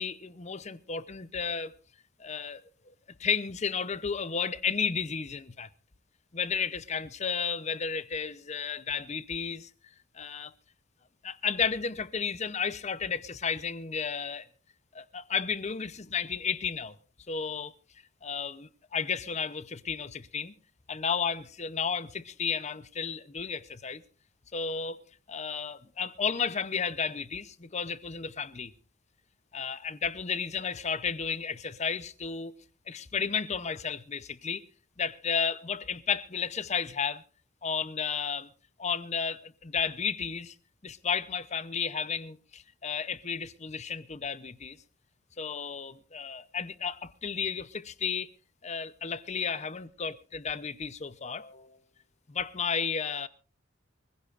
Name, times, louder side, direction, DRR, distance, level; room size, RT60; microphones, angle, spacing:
voice 1, 0.0-1.7 2.2-2.6 2.9-3.0 3.2-5.7 6.3-9.7 10.1-10.5 11.2-14.5 14.9-17.0 17.3-17.7 18.2-20.5 20.9-24.0 24.5-25.0 25.3-28.7 29.5-32.5 32.9-34.6 35.0-37.2 37.6-38.5 38.8-40.5 40.8-44.8 45.4-48.3 48.6-51.8 52.3-53.3, left 6 dB, 35° left, 0.7 m, -33 dB
25.0 x 16.0 x 2.5 m
head